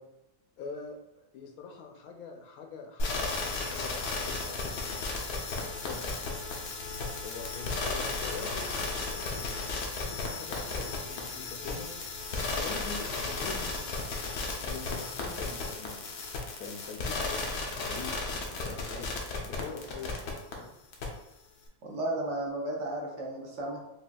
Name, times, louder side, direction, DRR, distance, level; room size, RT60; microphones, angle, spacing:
voice 1, 0.6-6.3 7.2-9.6 10.1-13.8 14.4-16.0 16.6-17.4 17.8-19.1 19.4-20.8, left 5 dB, 75° left, 3 dB, 1.0 m, -44 dB
sound 1, 3.0-20.5 20.9-21.0, left 3 dB, 90° left, 1.2 m, -34 dB
voice 2, 21.8-23.8, right 1 dB, 55° right, -1 dB, 1.0 m, -34 dB
5.0 x 2.4 x 2.3 m, 0.89 s
omnidirectional pair, 1.7 m